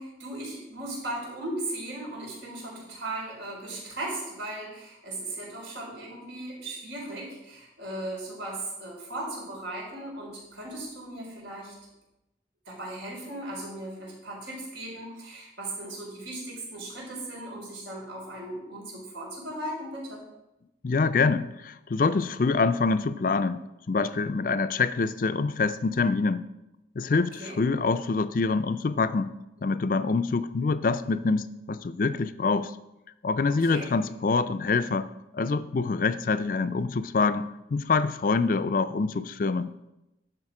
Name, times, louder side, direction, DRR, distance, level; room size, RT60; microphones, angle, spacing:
voice 1, 0.0-11.7 12.7-20.2 27.2-27.6 33.5-33.9, right 1 dB, 85° right, -3 dB, 4.2 m, -37 dB
voice 2, 20.8-23.6 23.9-26.4 27.0-29.3 29.6-32.7 33.2-35.1 35.3-39.7, left 4 dB, 50° left, 12 dB, 0.4 m, -25 dB
11.0 x 6.7 x 4.8 m, 0.92 s
head